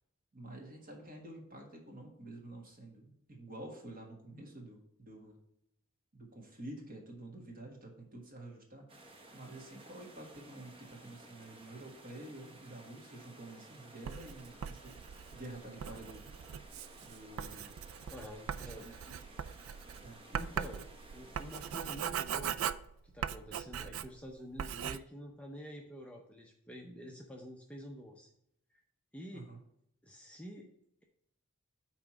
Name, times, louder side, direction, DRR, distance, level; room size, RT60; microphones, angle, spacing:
voice 1, 0.3-5.4 6.1-8.8 9.3-15.0 15.3-16.2 17.0-17.7 18.5-18.9 20.0-20.2 29.3-29.6, right 1 dB, 40° right, 1 dB, 1.6 m, -49 dB
sound 1, 8.9-22.1, right 2 dB, 25° right, 0.9 m, -56 dB
Writing, 14.0-24.3 24.6-25.0, right 8 dB, 65° right, 0.3 m, -40 dB
voice 2, 18.1-18.9 20.3-20.8 21.1-22.7 23.0-28.3 28.7-28.8 29.1-29.5 30.0-30.7, equal, 5° left, 0 dB, 0.6 m, -48 dB
5.8 x 4.4 x 5.9 m, 0.75 s
head